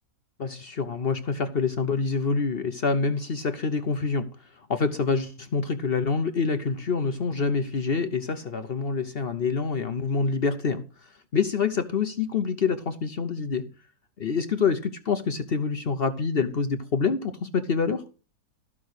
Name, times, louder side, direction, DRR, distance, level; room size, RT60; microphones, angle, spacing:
voice 1, 0.4-13.7 14.2-18.0, left 5 dB, 45° left, 0.8 m, -26 dB
13.5 x 6.1 x 6.4 m
omnidirectional pair, 1.7 m